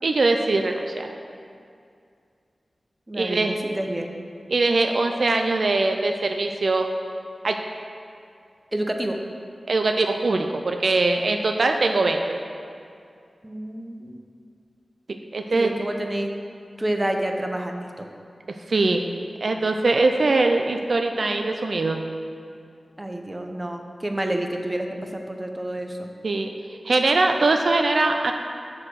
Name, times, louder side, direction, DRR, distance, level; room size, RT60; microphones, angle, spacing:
voice 1, 0.0-1.1 3.2-3.6 4.5-6.9 7.4-7.6 9.7-12.4 15.1-15.7 18.7-19.0 19.4-22.0 26.2-28.3, right 3 dB, 65° right, 4 dB, 0.4 m, -22 dB
voice 2, 3.1-4.1 8.7-9.2 13.4-14.2 15.5-16.3 16.8-18.0 23.0-26.1, right 1 dB, 20° right, 4 dB, 0.6 m, -29 dB
7.4 x 4.7 x 6.2 m, 2.4 s
wide cardioid pair, 85°, 0 cm